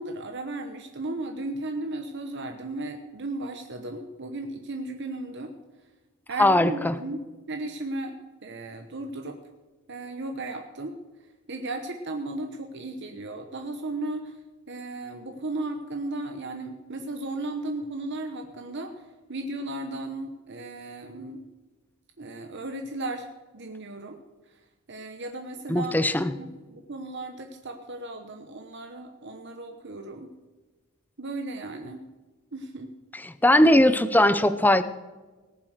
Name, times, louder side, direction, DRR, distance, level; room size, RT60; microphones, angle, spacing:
voice 1, 0.0-5.9 6.3-7.2 7.5-8.2 8.4-9.4 9.9-10.9 11.2-21.4 22.2-23.3 23.5-24.2 24.4-25.9 26.3-30.3 31.2-32.1 32.5-32.9, right 2 dB, 50° right, 5 dB, 1.0 m, -35 dB
voice 2, 6.4-6.9 25.7-26.3 33.4-34.8, left 1 dB, 10° left, 13 dB, 0.6 m, -19 dB
19.0 x 7.4 x 6.5 m, 1.3 s
head